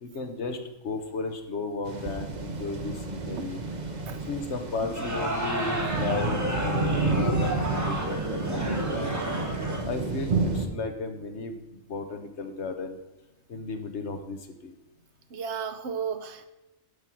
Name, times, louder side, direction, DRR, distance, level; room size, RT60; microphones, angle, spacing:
voice 1, 0.0-3.6 4.3-8.6 8.9-9.2 9.8-13.0 13.5-14.7, left 3 dB, 60° left, 6 dB, 1.4 m, -34 dB
sound 1, 1.9-10.7, right 3 dB, 35° right, 1.1 m, -30 dB
sound 2, 4.8-9.8, right 1 dB, 15° right, 1.6 m, -32 dB
voice 2, 15.3-16.5, right 6 dB, 60° right, 7 dB, 1.1 m, -33 dB
12.0 x 5.5 x 6.1 m, 0.98 s
omnidirectional pair, 1.4 m